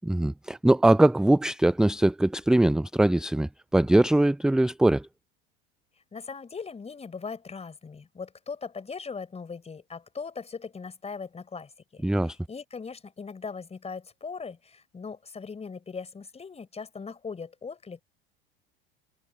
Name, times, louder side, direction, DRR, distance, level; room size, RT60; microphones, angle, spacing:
voice 1, 0.0-5.1 12.0-12.4, right 1 dB, ahead, 0.4 m, -22 dB
voice 2, 6.1-18.0, left 5 dB, 20° left, 5.1 m, -39 dB
figure-of-eight pair, 70°, 30 cm